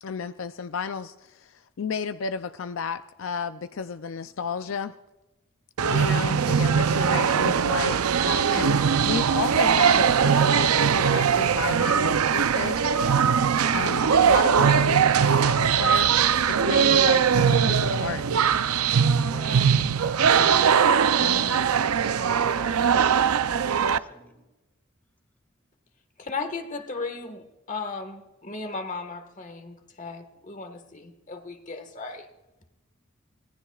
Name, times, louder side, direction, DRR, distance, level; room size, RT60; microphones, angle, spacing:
voice 1, 0.0-1.5 1.8-4.9 5.9-12.8 13.7-18.2 20.2-20.7 21.2-21.7, left 6 dB, 65° left, 0.4 m, -32 dB
sound 1, 5.8-24.0, right 7 dB, 90° right, 0.5 m, -21 dB
voice 2, 19.2-20.5 23.7-24.4, equal, 10° left, 1.8 m, -47 dB
voice 3, 26.2-32.3, left 4 dB, 35° left, 1.5 m, -36 dB
25.0 x 18.5 x 2.4 m
head